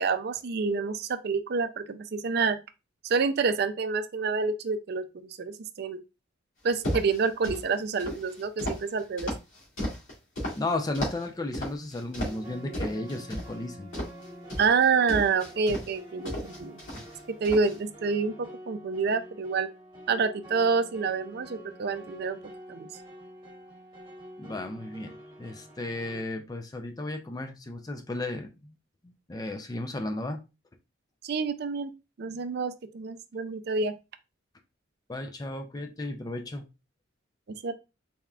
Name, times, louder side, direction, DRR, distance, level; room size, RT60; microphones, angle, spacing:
voice 1, 0.0-2.6 3.0-6.0 6.6-9.3 14.6-17.0 17.3-19.7 20.1-22.4 22.7-22.9 31.2-31.9 32.2-33.9 37.6-37.7, right 5 dB, 55° right, 0.4 m, -28 dB
sound 1, 6.7-7.6 8.0-10.6 10.9-11.3 11.5-12.5 12.7-13.5 13.9-15.9 16.3-17.2 17.4-17.8, equal, 75° left, 2.1 m, -34 dB
voice 2, 10.6-13.9 24.4-25.1 25.4-28.7 29.0-30.4 35.1-36.7, left 2 dB, 20° left, 0.4 m, -34 dB
sound 2, 12.2-26.2, equal, 25° right, 1.1 m, -47 dB
4.2 x 3.5 x 2.3 m
head